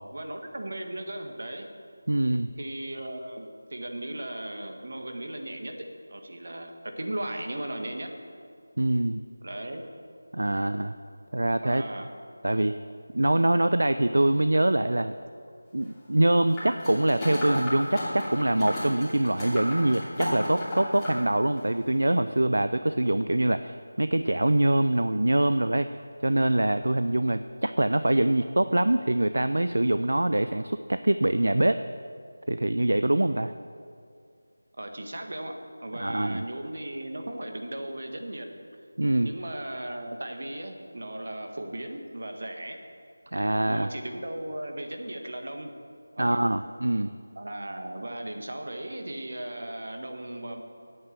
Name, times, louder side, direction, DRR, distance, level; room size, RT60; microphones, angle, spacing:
voice 1, 0.1-1.7 2.6-8.1 9.4-9.8 11.6-12.1 34.8-38.6 39.2-42.8 43.7-45.8 46.2-46.4 47.3-50.6, right 1 dB, 60° right, 4 dB, 1.7 m, -37 dB
voice 2, 2.1-2.5 8.8-9.2 10.3-10.9 11.3-11.8 12.4-12.8 13.1-15.1 15.7-31.8 32.5-33.5 36.0-36.5 39.0-39.3 43.3-43.9 46.2-47.1, right 1 dB, 75° right, 11 dB, 0.5 m, -24 dB
sound 1, 16.5-21.2 21.6-21.7, equal, 10° left, 2.8 m, -33 dB
10.0 x 8.8 x 8.2 m, 2.3 s
figure-of-eight pair, 170°, 0 cm